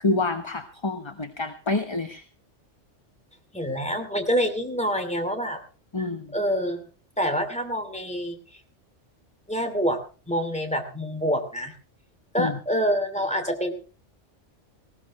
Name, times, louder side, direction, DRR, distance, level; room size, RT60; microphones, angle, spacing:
voice 1, 0.0-2.2 5.9-6.3 12.4-12.6, left 3 dB, 25° left, 8 dB, 1.0 m, -27 dB
voice 2, 3.5-5.6 6.0-6.8 7.2-8.6 9.5-10.0 10.3-11.7 12.3-13.7, equal, 5° left, 6 dB, 2.6 m, -26 dB
19.5 x 16.5 x 3.1 m, 0.35 s
omnidirectional pair, 1.3 m